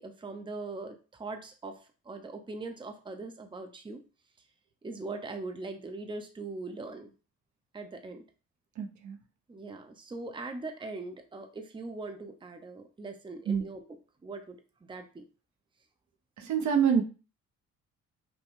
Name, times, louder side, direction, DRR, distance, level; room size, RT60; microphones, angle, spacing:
voice 1, 0.0-1.8 2.0-4.0 4.8-7.1 7.7-8.2 9.5-13.9 14.2-14.6 14.9-15.2, right 3 dB, 15° right, 6 dB, 0.7 m, -41 dB
voice 2, 8.8-9.2 13.5-13.7 16.4-17.0, right 7 dB, 70° right, 3 dB, 0.9 m, -26 dB
5.9 x 2.2 x 3.6 m, 0.34 s
cardioid pair, 90°, 30 cm